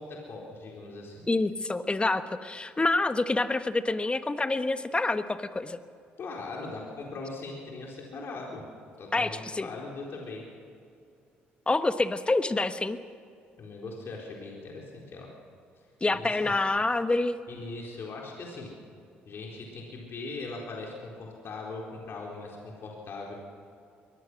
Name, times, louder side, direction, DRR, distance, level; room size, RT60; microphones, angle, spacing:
voice 1, 0.0-1.1 6.2-8.6 9.0-10.4 13.6-15.3 16.1-16.5 17.5-18.7 19.3-23.3, left 3 dB, 55° left, -1 dB, 4.2 m, -40 dB
voice 2, 1.3-5.8 9.1-9.7 11.7-13.0 16.0-17.3, left 2 dB, 20° left, 10 dB, 1.3 m, -27 dB
23.0 x 18.5 x 6.3 m, 2.4 s
hypercardioid pair, 60°, 5 cm